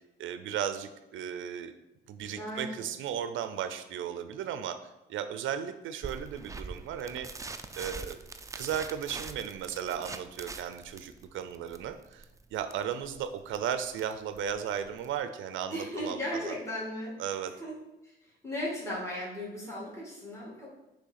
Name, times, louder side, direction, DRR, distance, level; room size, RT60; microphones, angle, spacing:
voice 1, 0.2-1.7 2.1-7.3 7.7-8.2 8.5-12.3 12.5-16.5 17.2-17.5, right 9 dB, 75° right, 10 dB, 0.5 m, -35 dB
voice 2, 2.4-2.9 15.7-17.1 17.6-17.8 18.0-20.7, left 1 dB, 15° left, -6 dB, 2.4 m, -36 dB
sound 1, 6.0-15.2, right 3 dB, 15° right, 0.4 m, -44 dB
6.2 x 3.3 x 5.8 m, 0.95 s
cardioid pair, 90°, 20 cm